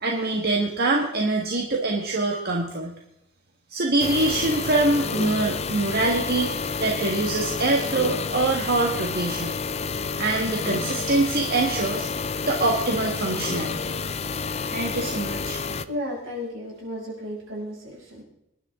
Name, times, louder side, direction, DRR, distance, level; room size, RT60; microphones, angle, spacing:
voice 1, 0.0-3.0 3.7-6.5 6.8-9.5 10.2-12.1 12.5-13.9 14.7-15.6, right 2 dB, 50° right, 1 dB, 1.5 m, -24 dB
sound 1, 4.0-15.9, left 5 dB, 30° left, 0.5 m, -30 dB
voice 2, 15.8-18.2, left 1 dB, 75° right, -3 dB, 6.5 m, -33 dB
24.5 x 11.0 x 3.7 m, 0.79 s
head